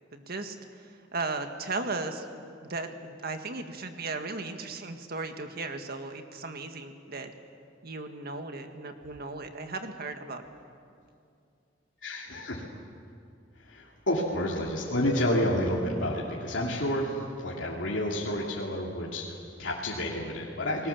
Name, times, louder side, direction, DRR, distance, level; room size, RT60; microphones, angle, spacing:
voice 1, 0.1-7.3 7.8-10.5, right 3 dB, 55° right, 6 dB, 1.8 m, -36 dB
voice 2, 12.0-12.6 13.6-20.9, left 1 dB, 75° left, -4 dB, 2.9 m, -30 dB
29.5 x 20.0 x 7.2 m, 2.4 s
head